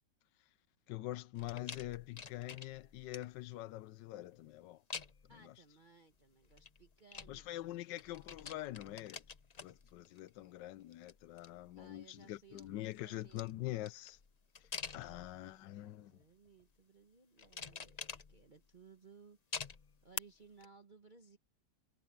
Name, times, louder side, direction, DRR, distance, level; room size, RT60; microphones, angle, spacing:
voice 1, 0.9-4.8 5.4-5.5 7.3-9.2 9.6-14.2 14.9-16.1, left 15 dB, 80° left, 1.3 m, -44 dB
sound 1, 1.4-3.5 4.9-5.4 6.4-7.7 8.0-10.4 10.8-11.9 12.4-15.6 16.2-16.6 17.4-18.7 19.5-20.2 20.6-20.7, left 5 dB, 45° left, 0.5 m, -48 dB
voice 2, 5.3-7.8 11.8-13.5 14.9-19.4 20.0-21.4, right 4 dB, 30° right, 1.1 m, -62 dB
omnidirectional pair, 2.0 m